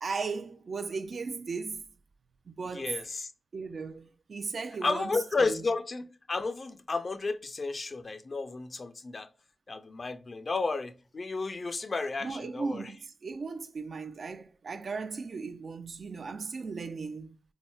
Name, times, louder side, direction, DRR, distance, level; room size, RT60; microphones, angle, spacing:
voice 1, 0.0-1.9 2.6-2.9 3.5-5.6 12.2-17.4, right 4 dB, 70° right, 0.3 m, -37 dB
voice 2, 2.7-3.3 4.8-9.3 9.7-12.9, left 3 dB, 55° left, 0.3 m, -32 dB
3.8 x 2.1 x 2.2 m
cardioid pair, 60°, 0 cm